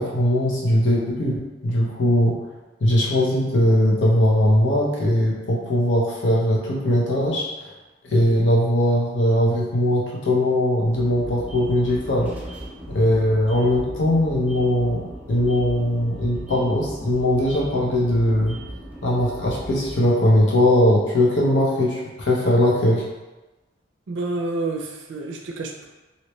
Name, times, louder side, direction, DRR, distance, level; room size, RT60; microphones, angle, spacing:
voice 1, 0.0-2.5 2.8-7.7 8.0-12.3 12.9-18.6 19.0-23.0, left 1 dB, 85° left, -4 dB, 0.9 m, -20 dB
sound 1, 11.0-20.0, right 1 dB, 10° right, 0.5 m, -38 dB
voice 2, 24.1-25.9, right 2 dB, 75° right, 2 dB, 0.4 m, -29 dB
3.1 x 2.8 x 3.0 m, 1.1 s
head